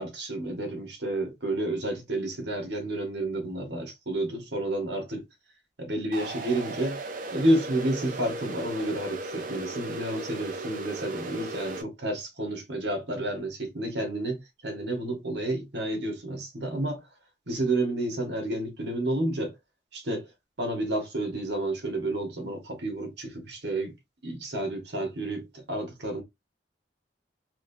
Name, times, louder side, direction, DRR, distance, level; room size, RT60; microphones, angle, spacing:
voice 1, 0.0-5.2 5.8-7.0 7.3-17.0 17.5-19.5 19.9-20.3 20.6-23.9 24.2-26.2, right 1 dB, 75° right, 1.2 m, -30 dB
sound 1, 6.1-11.8, right 3 dB, 50° right, 0.6 m, -37 dB
3.2 x 3.0 x 2.6 m
head